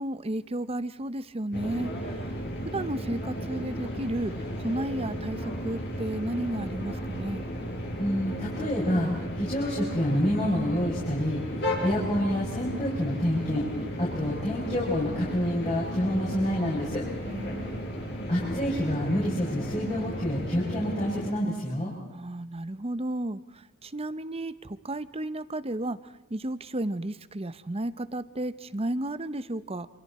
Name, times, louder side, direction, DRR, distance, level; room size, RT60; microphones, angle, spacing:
voice 1, 0.0-1.9 2.7-4.3 4.6-7.4 17.3-17.9 22.1-23.4 23.8-26.0 26.3-29.9, right 1 dB, 25° right, 14 dB, 0.9 m, -33 dB
sound 1, 1.5-21.3, equal, 50° left, 5.8 m, -34 dB
voice 2, 8.0-9.1 9.4-13.6 14.0-17.0 18.3-21.9, equal, 30° left, -6 dB, 6.5 m, -28 dB
28.0 x 27.0 x 4.3 m, 1.0 s
head